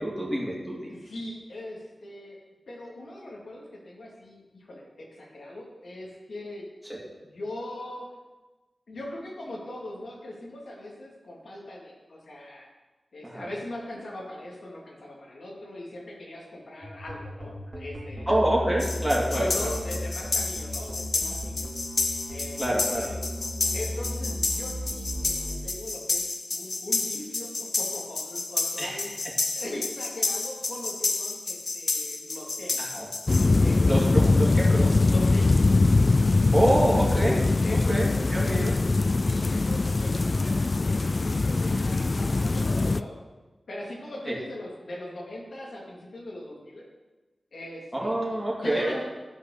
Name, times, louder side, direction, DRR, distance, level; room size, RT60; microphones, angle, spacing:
voice 1, 0.0-0.9 6.9-7.0 13.2-13.5 18.3-19.7 22.6-23.1 28.8-29.3 32.8-33.1 33.9-34.9 36.5-38.7 44.3-44.4 47.9-49.0, right 1 dB, 5° right, -5 dB, 2.5 m, -27 dB
voice 2, 0.9-2.4 2.7-6.7 7.2-8.1 8.9-12.7 13.1-18.3 19.3-21.7 22.3-22.6 22.9-23.2 23.7-26.2 26.5-32.8 33.6-34.4 34.7-35.6 37.6-38.9 39.2-43.2 43.7-46.8 47.5-48.2 48.6-49.0, left 1 dB, 85° left, -3 dB, 2.5 m, -40 dB
sound 1, 16.8-25.7, equal, 35° right, 2.6 m, -35 dB
sound 2, 18.8-33.5, left 3 dB, 60° left, 0.8 m, -31 dB
sound 3, 33.3-43.0, left 3 dB, 45° left, 0.3 m, -22 dB
11.5 x 5.1 x 6.7 m, 1.2 s
wide cardioid pair, 70°, 0 cm